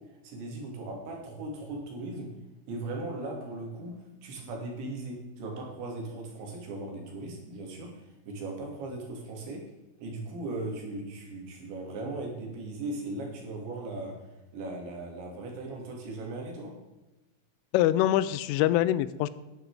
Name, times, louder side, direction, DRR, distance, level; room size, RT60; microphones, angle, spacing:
voice 1, 0.1-2.3 2.7-9.6 10.0-14.1 14.5-16.7, right 2 dB, 65° right, 0 dB, 5.1 m, -38 dB
voice 2, 17.7-19.3, left 13 dB, 85° left, 16 dB, 3.0 m, -24 dB
12.5 x 11.0 x 4.9 m, 1.1 s
omnidirectional pair, 5.7 m